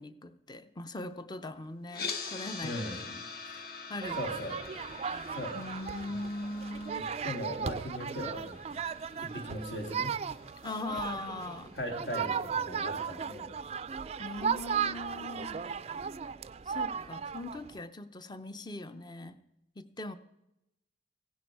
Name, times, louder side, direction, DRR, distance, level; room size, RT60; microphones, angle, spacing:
voice 1, 0.0-4.4 5.5-7.1 10.6-11.7 14.2-15.6 16.7-19.4 19.8-20.1, left 2 dB, 25° left, 12 dB, 0.6 m, -41 dB
sound 1, 1.9-12.0, left 4 dB, 60° left, 1.2 m, -45 dB
voice 2, 2.6-3.0 4.1-4.6 5.3-5.6 6.1-6.2 7.2-8.9 9.2-10.2 11.7-13.5, equal, 75° left, 3 dB, 2.5 m, -38 dB
sound 2, 4.0-17.8, right 7 dB, 35° right, 0.3 m, -36 dB
15.5 x 10.5 x 4.6 m, 0.88 s
head